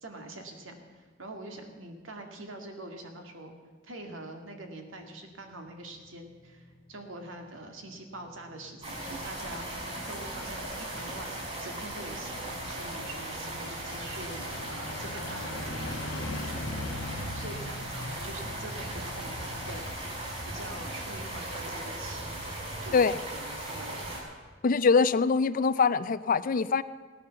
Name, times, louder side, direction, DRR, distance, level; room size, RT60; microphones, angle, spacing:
voice 1, 0.0-3.5 3.8-19.8 20.5-22.4 22.8-24.3, right 1 dB, 75° right, 4 dB, 2.1 m, -44 dB
sound 1, 5.7-22.2 22.6-22.7, left 2 dB, 85° left, 1.1 m, -43 dB
sound 2, 8.8-24.2, right 1 dB, 30° right, 5.0 m, -38 dB
voice 2, 24.6-26.8, left 5 dB, 45° left, 16 dB, 0.4 m, -23 dB
16.5 x 10.0 x 6.9 m, 1.4 s
head